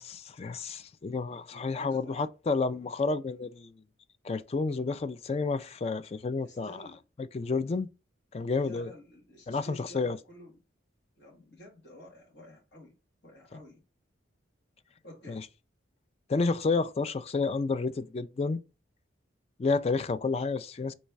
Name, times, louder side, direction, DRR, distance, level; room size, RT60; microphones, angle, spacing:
voice 1, 0.0-3.7 4.2-6.9 7.2-7.9 8.3-8.9 9.5-10.2 13.5-13.6 15.3-15.4 16.3-18.6 19.6-20.9, left 4 dB, 30° left, 0.3 m, -30 dB
voice 2, 1.5-2.2 6.4-7.0 8.6-10.6 11.2-12.9 13.2-13.8 15.0-15.5, left 1 dB, 60° left, 1.8 m, -51 dB
4.2 x 3.2 x 3.4 m
head